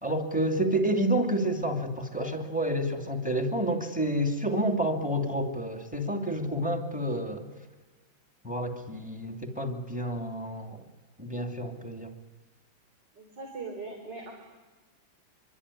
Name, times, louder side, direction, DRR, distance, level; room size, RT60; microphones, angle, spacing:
voice 1, 0.0-7.5 8.4-10.8 11.2-12.1, right 1 dB, 5° right, 6 dB, 2.6 m, -29 dB
voice 2, 13.1-14.3, right 3 dB, 60° right, 1 dB, 4.5 m, -40 dB
25.0 x 23.5 x 10.0 m, 1.3 s
omnidirectional pair, 2.1 m